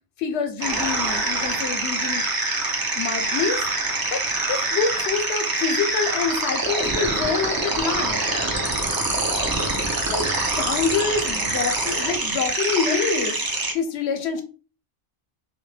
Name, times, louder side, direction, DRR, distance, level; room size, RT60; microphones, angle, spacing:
voice 1, 0.2-2.3 2.9-3.6 4.1-4.2 4.5-8.2 10.1-13.4 13.7-14.4, left 5 dB, 80° left, 6 dB, 0.9 m, -26 dB
sound 1, 0.6-13.7, right 2 dB, 35° right, 0.4 m, -25 dB
2.2 x 2.1 x 3.1 m, 0.34 s
omnidirectional pair, 1.1 m